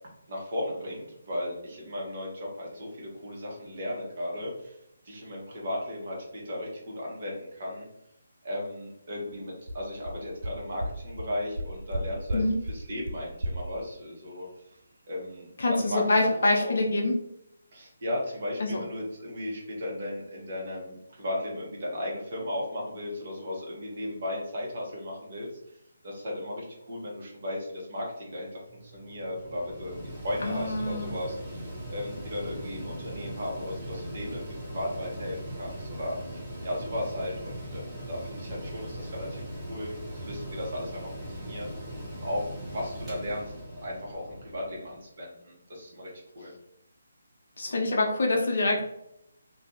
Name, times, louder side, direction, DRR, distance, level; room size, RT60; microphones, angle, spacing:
voice 1, 0.3-4.8 5.0-7.9 8.4-14.5 15.1-16.3 16.6-16.8 17.7-25.5 26.0-39.4 39.7-39.9 40.2-41.7 42.1-43.5 43.8-46.5, left 1 dB, 45° right, -3 dB, 1.0 m, -36 dB
sound 1, 9.7-9.8 10.1-10.2 10.4-10.5 10.8-10.9 11.2-11.3 11.5-12.0 12.3-12.4 12.7-12.8 13.1-13.2 13.4-13.5, right 1 dB, 70° right, 0.4 m, -31 dB
voice 2, 15.6-17.1 18.6-18.8 30.4-31.1 47.6-48.9, left 2 dB, 55° left, 0 dB, 0.6 m, -25 dB
Mechanical fan, 28.7-45.0, right 1 dB, 10° right, 0.8 m, -40 dB
2.5 x 2.3 x 2.8 m, 0.80 s
figure-of-eight pair, 145°, 0 cm